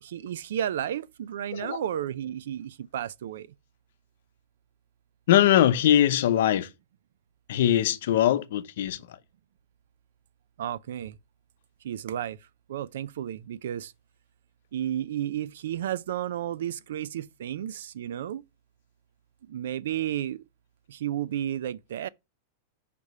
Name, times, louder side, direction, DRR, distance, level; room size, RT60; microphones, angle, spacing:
voice 1, 0.0-3.5 10.6-11.2 11.8-12.4 12.7-13.9 14.7-18.4 19.5-20.4 20.9-22.1, right 10 dB, 75° right, 0.4 m, -32 dB
voice 2, 5.3-6.7 7.5-9.2, left 11 dB, 60° left, 0.7 m, -22 dB
5.1 x 4.8 x 5.3 m
supercardioid pair, 180°, 0 cm